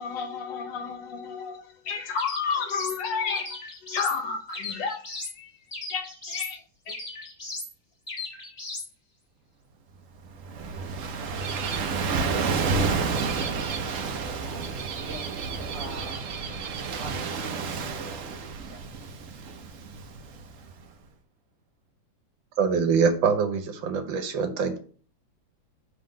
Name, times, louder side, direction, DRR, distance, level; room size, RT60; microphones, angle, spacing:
voice 1, 0.0-5.6 5.9-6.6 6.9-7.0, left 5 dB, 70° left, 1.5 m, -32 dB
sound 1, 2.2-3.0 3.3-4.2 4.5-5.4 5.7-6.5 6.9-7.7 8.1-8.9, left 2 dB, 30° left, 1.7 m, -37 dB
Gull seagull / Waves surf, 10.2-20.7, right 4 dB, 60° right, 0.8 m, -30 dB
voice 2, 12.1-15.3 15.7-16.4 17.0-18.8, right 2 dB, 35° right, 1.9 m, -45 dB
voice 3, 22.6-24.8, right 5 dB, 75° right, 1.5 m, -24 dB
5.6 x 3.7 x 5.0 m
omnidirectional pair, 2.1 m